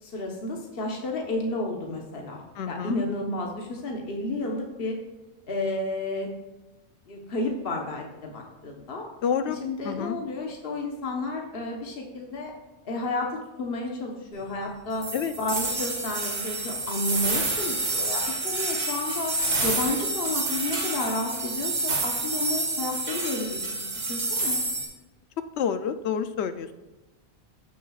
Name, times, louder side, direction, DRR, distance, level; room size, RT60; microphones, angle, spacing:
voice 1, 0.0-5.0 5.5-6.3 7.1-9.0 9.5-12.5 12.8-15.1 15.4-19.3 19.6-24.6, left 2 dB, 60° left, 1 dB, 1.3 m, -31 dB
voice 2, 2.6-3.0 9.2-9.6 9.8-10.2 15.1-15.3 25.6-26.7, left 7 dB, 80° left, 10 dB, 0.9 m, -28 dB
sound 1, 15.0-24.8, right 2 dB, 80° right, 1.9 m, -28 dB
15.0 x 6.1 x 2.4 m, 1.1 s
omnidirectional pair, 1.1 m